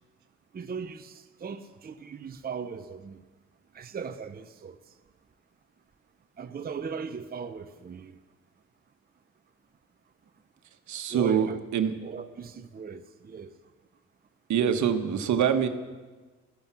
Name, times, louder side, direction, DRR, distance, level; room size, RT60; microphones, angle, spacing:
voice 1, 0.5-3.2 3.7-4.8 6.4-8.1 11.1-11.6 12.0-13.5, right 6 dB, 30° right, 0.8 m, -38 dB
voice 2, 10.9-11.9 14.5-15.7, right 8 dB, 70° right, 1.4 m, -25 dB
16.0 x 14.0 x 6.2 m
cardioid pair, 90°, 30 cm